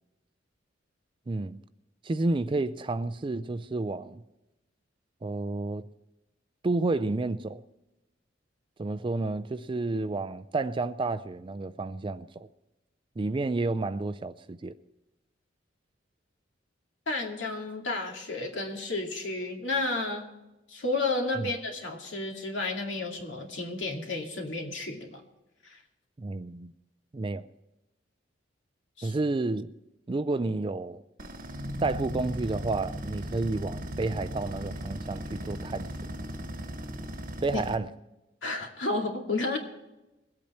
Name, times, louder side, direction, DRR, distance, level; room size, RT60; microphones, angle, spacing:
voice 1, 1.3-1.6 2.0-4.2 5.2-5.9 6.6-7.6 8.8-12.5 13.2-14.7 21.4-21.5 26.2-26.7 27.1-27.5 29.0-29.7 30.1-31.0 31.8-35.9 37.4-37.9, right 3 dB, 25° right, 0.4 m, -30 dB
voice 2, 17.1-20.3 20.7-25.2 25.6-25.8 29.0-29.1 37.5-37.6 38.4-39.6, left 2 dB, 75° left, 2.4 m, -32 dB
sound 1, 31.2-37.8, equal, 45° right, 1.2 m, -37 dB
22.0 x 8.5 x 4.4 m
head